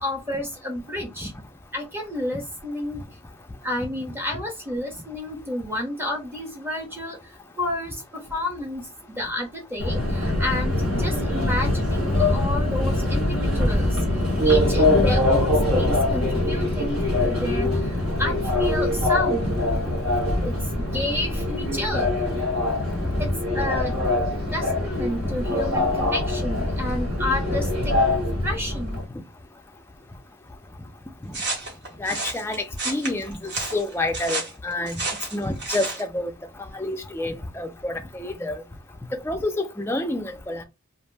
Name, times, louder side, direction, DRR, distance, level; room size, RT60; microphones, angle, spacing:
voice 1, 0.0-1.3 1.7-3.0 3.6-14.0 14.4-19.6 20.4-22.1 23.2-23.9 24.5-27.9 28.4-29.0, left 1 dB, 10° right, 0.7 m, -30 dB
Subway metro underground, 9.8-29.0, left 1 dB, 65° right, 1.2 m, -23 dB
sound 1, 31.3-36.1, right 2 dB, 50° right, 1.0 m, -31 dB
voice 2, 32.0-35.0 35.3-36.3 36.7-38.5 39.1-40.6, left 2 dB, 10° left, 0.3 m, -28 dB
2.5 x 2.1 x 3.3 m
head